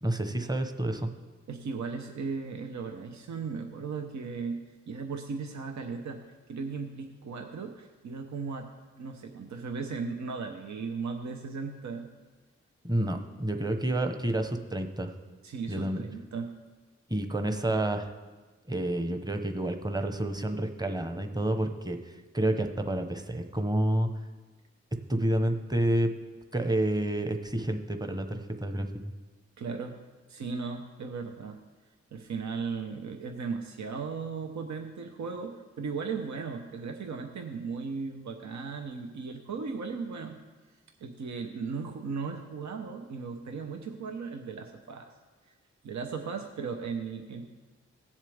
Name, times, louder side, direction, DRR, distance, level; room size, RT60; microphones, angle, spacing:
voice 1, 0.0-1.1 12.8-15.1 15.7-16.0 17.1-18.1 18.7-22.0 22.3-24.1 25.1-26.1 26.5-29.1, right 1 dB, 15° right, 6 dB, 1.0 m, -29 dB
voice 2, 1.5-6.2 6.5-8.7 9.0-12.1 15.4-16.5 29.6-30.0 30.3-31.6 32.1-40.4 41.0-45.1 45.8-47.5, right 5 dB, 75° right, 4 dB, 0.8 m, -36 dB
16.5 x 7.3 x 3.5 m, 1.3 s
cardioid pair, 45°, 29 cm